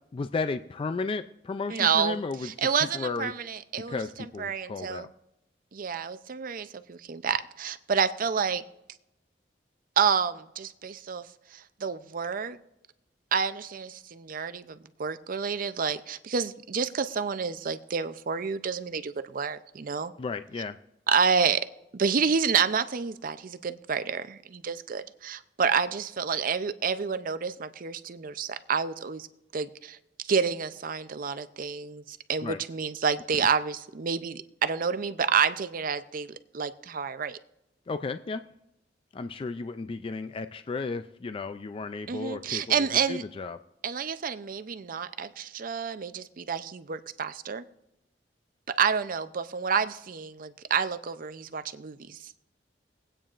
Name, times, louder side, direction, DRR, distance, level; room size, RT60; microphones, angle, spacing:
voice 1, 0.1-3.3 3.8-5.1 20.2-20.8 32.4-32.6 33.3-33.5 37.9-38.4 39.1-43.6, left 4 dB, 30° left, 10 dB, 0.3 m, -34 dB
voice 2, 1.7-4.0 4.4-5.1 5.7-8.6 10.0-11.2 11.5-12.6 13.3-20.1 21.1-21.7 21.9-29.3 29.5-30.0 30.3-37.4 42.1-43.2 43.8-47.6 48.7-52.2, right 6 dB, 50° right, 12 dB, 0.5 m, -29 dB
22.0 x 8.9 x 2.5 m, 0.89 s
head